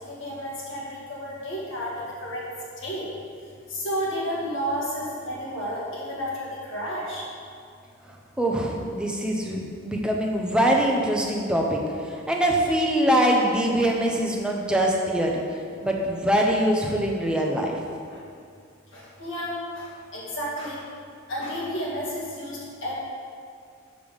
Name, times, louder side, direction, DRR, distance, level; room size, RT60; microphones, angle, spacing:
voice 1, 0.0-2.4 2.8-3.1 3.7-7.3 18.1-18.2 18.9-20.8 21.3-23.0, equal, 60° left, -5 dB, 1.9 m, -32 dB
voice 2, 8.4-17.8, right 1 dB, 5° right, -1 dB, 0.7 m, -23 dB
6.7 x 5.1 x 5.3 m, 2.3 s
head